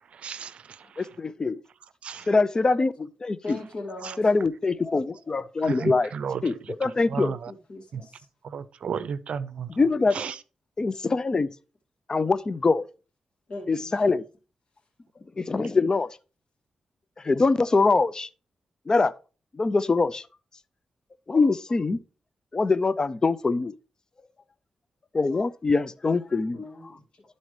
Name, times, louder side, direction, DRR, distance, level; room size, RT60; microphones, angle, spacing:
voice 1, 0.1-0.9 2.0-2.3 4.0-4.1 5.6-6.5 6.8-7.5 7.9-8.0 8.4-9.7 10.1-10.3, right 6 dB, 75° right, 0.5 m, -33 dB
voice 2, 1.0-1.6 2.3-3.6 4.2-6.1 6.4-7.3 9.7-10.2 10.8-11.5 12.1-12.8 13.7-14.2 15.4-16.1 17.2-18.3 18.9-19.1 19.5-20.3 21.3-22.0 22.5-23.7 25.1-26.9, left 3 dB, 35° left, 0.5 m, -23 dB
voice 3, 3.4-4.2 7.1-8.3 13.5-14.0 26.5-27.2, left 2 dB, 60° left, 2.5 m, -40 dB
12.0 x 4.1 x 3.2 m
cardioid pair, 65°, 2 cm